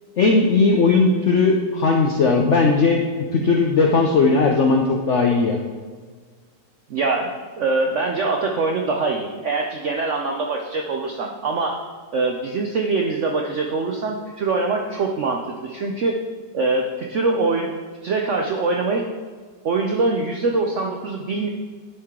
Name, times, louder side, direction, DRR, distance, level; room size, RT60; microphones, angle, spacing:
voice 1, 0.2-3.0 3.3-5.6, left 4 dB, 75° left, 1 dB, 0.6 m, -17 dB
voice 2, 6.9-11.8 12.1-16.2 16.5-17.7 18.0-19.1 19.6-21.5, right 3 dB, 75° right, 1 dB, 0.6 m, -23 dB
10.0 x 4.7 x 3.7 m, 1.5 s
omnidirectional pair, 2.0 m